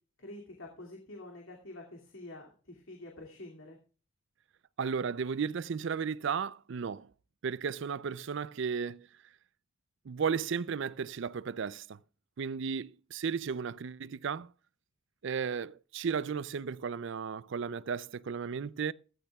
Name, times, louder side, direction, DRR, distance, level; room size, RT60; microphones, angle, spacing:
voice 1, 0.2-3.8, left 2 dB, 70° left, 2.5 m, -47 dB
voice 2, 4.8-7.1 7.4-9.1 10.1-12.0 12.4-14.5 15.2-18.9, right 6 dB, 60° right, 0.4 m, -34 dB
15.0 x 15.0 x 2.3 m
head